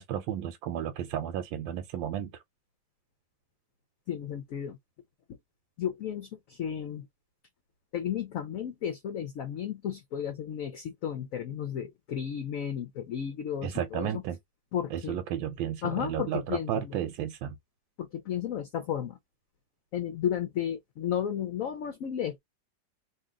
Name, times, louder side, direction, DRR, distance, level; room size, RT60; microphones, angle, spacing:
voice 1, 0.0-2.4 13.6-14.4 14.9-17.6, right 10 dB, 85° right, 1.3 m, -33 dB
voice 2, 4.1-4.8 5.3-5.4 5.8-7.1 7.9-14.1 14.7-15.2 15.8-17.0 18.0-19.2 19.9-22.4, left 9 dB, 70° left, 0.8 m, -33 dB
2.8 x 2.7 x 3.5 m
omnidirectional pair, 2.0 m